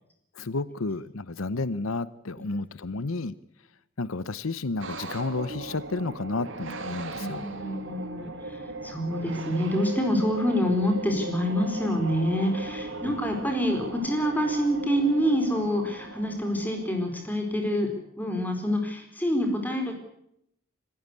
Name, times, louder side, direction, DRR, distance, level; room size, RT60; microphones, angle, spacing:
voice 1, 0.4-3.3 4.0-7.4 13.0-13.2, left 3 dB, 85° left, 17 dB, 0.8 m, -31 dB
sound 1, 4.8-17.8, right 2 dB, 65° right, 2.9 m, -38 dB
voice 2, 7.1-17.9 18.2-19.9, equal, 10° left, 4 dB, 4.5 m, -27 dB
26.0 x 15.5 x 8.4 m, 0.75 s
head